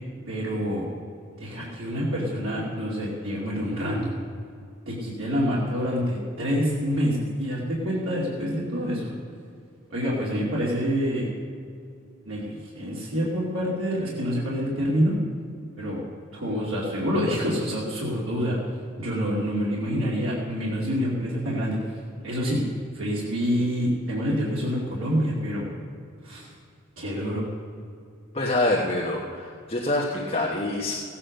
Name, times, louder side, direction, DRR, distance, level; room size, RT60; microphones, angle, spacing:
voice 1, 0.3-0.8 1.4-4.2 4.9-9.1 9.9-11.3 12.3-15.1 15.8-16.0 16.3-18.6 19.0-21.8 22.2-22.6 22.9-25.7 26.2-26.5 27.0-27.4, equal, 80° right, -6 dB, 2.5 m, -27 dB
voice 2, 28.3-30.9, left 2 dB, 30° left, -2 dB, 1.2 m, -26 dB
16.0 x 8.6 x 6.5 m, 2.3 s
head